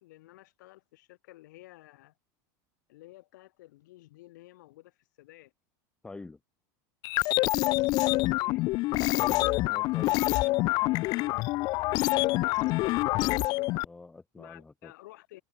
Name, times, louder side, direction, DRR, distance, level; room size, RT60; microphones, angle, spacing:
voice 1, 0.0-2.1 2.9-5.5 8.4-8.7 11.2-12.7 14.4-15.4, left 18 dB, 80° left, 4.1 m, -53 dB
voice 2, 6.0-6.4 9.1-10.2 13.1-13.5 13.8-14.9, left 3 dB, 10° left, 1.1 m, -46 dB
sound 1, 7.0-13.8, left 20 dB, 45° left, 0.4 m, -26 dB
supercardioid pair, 140°, 10 cm